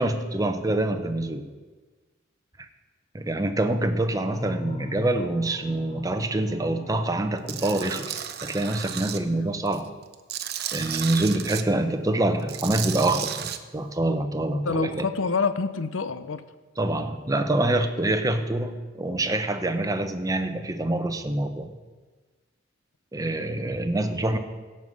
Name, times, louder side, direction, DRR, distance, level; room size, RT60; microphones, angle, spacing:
voice 1, 0.0-1.5 3.1-9.9 10.7-15.1 16.8-21.7 23.1-24.4, right 1 dB, 20° right, 7 dB, 0.8 m, -26 dB
sound 1, 4.3-8.8, left 1 dB, 30° left, 0.4 m, -40 dB
Tools, 7.5-9.2 9.7-11.6 12.4-13.6, right 10 dB, 55° right, 0.7 m, -33 dB
voice 2, 14.7-16.4, left 4 dB, 80° left, 12 dB, 0.7 m, -27 dB
16.5 x 5.6 x 7.9 m, 1.3 s
head